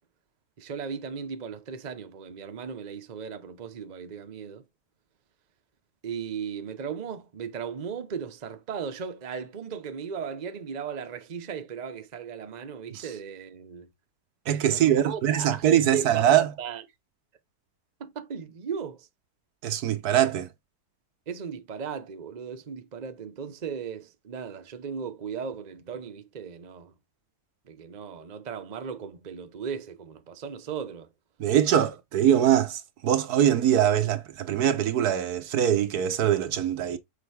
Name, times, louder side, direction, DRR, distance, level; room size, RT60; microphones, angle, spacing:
voice 1, 0.6-4.6 6.0-13.9 14.7-16.8 18.0-19.1 21.3-26.9 27.7-31.1, right 6 dB, 35° right, 0.8 m, -37 dB
voice 2, 14.5-16.5 19.6-20.5 31.4-37.0, right 10 dB, 80° right, 1.4 m, -23 dB
6.8 x 5.0 x 3.3 m
omnidirectional pair, 1.6 m